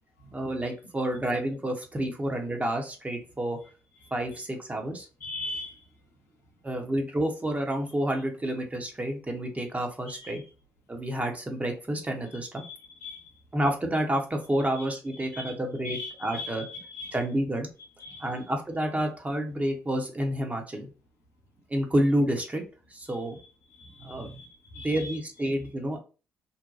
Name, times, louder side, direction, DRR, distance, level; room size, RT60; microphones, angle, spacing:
voice 1, 0.3-3.6 4.1-5.1 6.6-10.4 10.9-12.6 13.5-16.6 17.1-17.7 18.2-20.9 21.7-22.6 22.9-23.4 24.0-24.3 24.8-26.0, right 1 dB, 20° right, 3 dB, 0.8 m, -29 dB
voice 2, 4.0-4.4 5.2-5.8 10.2-10.4 12.3-13.3 14.7-14.8 15.2-15.5 15.8-17.2 18.0-18.5 23.1-23.4 23.7-25.2, left 2 dB, 80° left, -2 dB, 0.8 m, -41 dB
2.7 x 2.2 x 2.4 m, 0.33 s
figure-of-eight pair, 45°, 8 cm